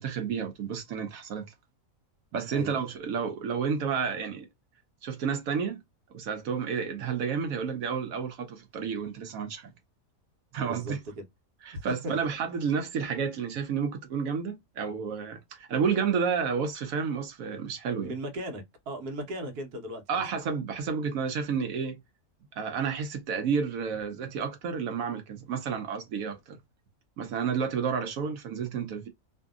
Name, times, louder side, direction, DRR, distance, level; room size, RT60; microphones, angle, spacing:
voice 1, 0.0-1.5 2.3-4.5 5.0-5.8 6.1-9.7 10.5-11.0 11.6-18.1 20.1-22.0 22.6-26.6 27.2-29.1, right 6 dB, 70° right, 1.0 m, -31 dB
voice 2, 10.6-11.2 11.7-12.3 18.0-20.2, right 1 dB, 85° right, 1.3 m, -37 dB
2.7 x 2.6 x 2.3 m
omnidirectional pair, 1.6 m